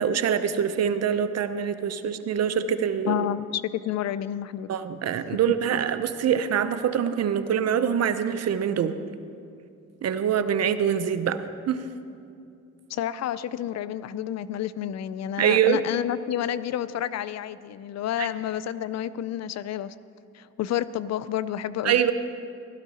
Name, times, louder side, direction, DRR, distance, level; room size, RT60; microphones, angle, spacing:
voice 1, 0.0-3.3 4.7-8.9 10.0-11.8 15.4-15.8 18.2-18.3 21.8-22.1, right 8 dB, 55° right, 10 dB, 0.8 m, -24 dB
voice 2, 3.1-4.7 12.9-19.9 20.3-22.0, left 11 dB, 60° left, 16 dB, 0.5 m, -30 dB
15.5 x 12.5 x 4.2 m, 2.5 s
cardioid pair, 90°, 30 cm